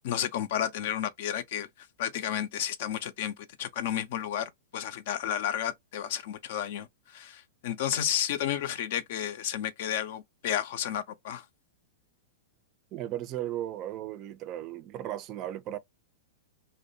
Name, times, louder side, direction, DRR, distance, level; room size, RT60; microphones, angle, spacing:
voice 1, 0.0-1.7 2.0-6.9 7.1-11.4, left 10 dB, 60° left, 0.4 m, -32 dB
voice 2, 12.9-15.8, right 13 dB, 40° right, 0.3 m, -36 dB
2.7 x 2.0 x 2.6 m
hypercardioid pair, 105°, 0 cm